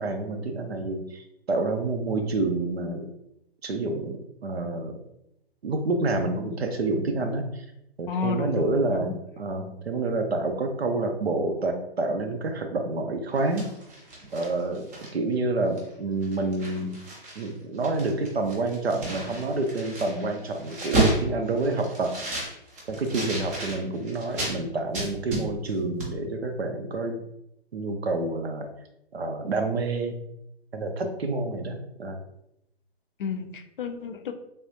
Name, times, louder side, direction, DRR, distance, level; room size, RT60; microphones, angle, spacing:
voice 1, 0.0-3.1 3.6-5.0 5.6-7.7 8.0-13.7 14.3-17.0 17.4-22.1 22.9-27.2 27.7-28.7 29.1-30.1 30.7-32.2, right 2 dB, 75° right, 5 dB, 0.6 m, -28 dB
voice 2, 8.1-9.1 33.2-34.3, left 4 dB, 55° left, 8 dB, 0.4 m, -31 dB
sound 1, 13.3-15.3 15.8-15.9 16.2-17.5 17.7-24.6 24.9-25.7 26.0-26.1, right 2 dB, 15° right, 0.4 m, -31 dB
3.4 x 2.4 x 2.7 m, 0.80 s
figure-of-eight pair, 125°, 32 cm